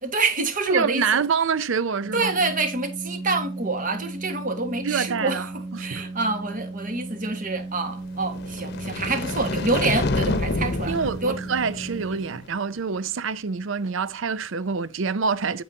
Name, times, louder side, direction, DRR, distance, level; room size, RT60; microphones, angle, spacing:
voice 1, 0.0-1.0 2.1-5.5 5.8-11.4, right 3 dB, 40° right, 1.5 m, -27 dB
voice 2, 0.7-2.3 4.8-6.0 10.9-15.6, right 5 dB, 65° right, 0.5 m, -26 dB
Organ, 2.0-12.8, right 2 dB, 25° right, 1.1 m, -36 dB
sound 1, 8.2-12.4, left 2 dB, 50° left, 0.9 m, -28 dB
9.5 x 8.6 x 2.7 m
head